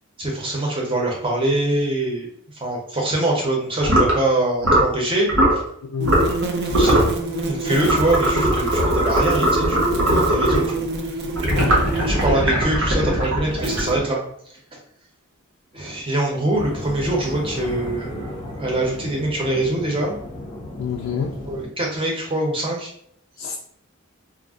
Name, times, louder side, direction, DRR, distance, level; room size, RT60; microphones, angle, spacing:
voice 1, 0.2-2.3 2.5-5.3 6.7-7.1 7.4-10.9 11.9-14.2 14.7-14.8 15.7-20.2 21.5-22.9, right 1 dB, 25° right, -2 dB, 0.7 m, -23 dB
sound 1, 3.8-4.2 4.6-4.9 5.3-5.6 6.0-6.4 6.7-7.1 7.8-10.7 11.4-14.2, right 1 dB, 85° right, 0.9 m, -19 dB
voice 2, 5.8-6.1 11.5-11.8 20.8-21.4 23.4-23.6, left 6 dB, 85° left, 2 dB, 0.3 m, -27 dB
sound 2, 6.0-12.4 13.6-13.9, right 2 dB, 50° right, 0.4 m, -28 dB
sound 3, 16.5-21.7, left 1 dB, 20° left, 0.7 m, -34 dB
2.4 x 2.1 x 3.5 m, 0.66 s
head